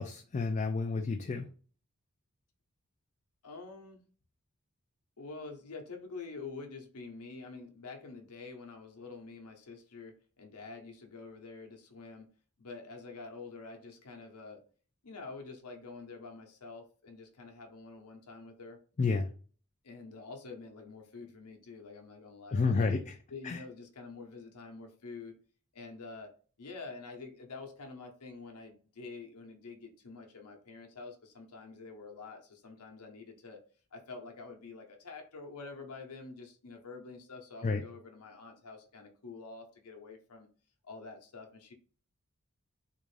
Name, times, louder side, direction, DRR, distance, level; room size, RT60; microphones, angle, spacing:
voice 1, 0.0-1.5 19.0-19.3 22.5-23.2 23.4-23.6 37.6-37.8, left 4 dB, 30° left, 0.3 m, -30 dB
voice 2, 3.4-4.0 5.2-12.3 12.6-14.6 15.0-18.8 19.8-23.0 23.3-25.4 25.7-26.3 26.6-33.6 33.9-40.5 40.8-41.7, left 4 dB, 85° left, 0.8 m, -47 dB
3.5 x 2.5 x 3.2 m
head